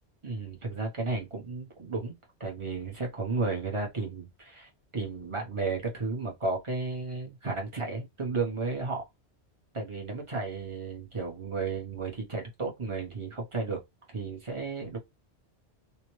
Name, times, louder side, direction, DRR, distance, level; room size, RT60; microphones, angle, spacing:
voice 1, 0.2-9.0 9.7-13.8 14.1-15.0, right 3 dB, 30° right, 0.8 m, -33 dB
2.7 x 2.1 x 3.0 m
omnidirectional pair, 1.1 m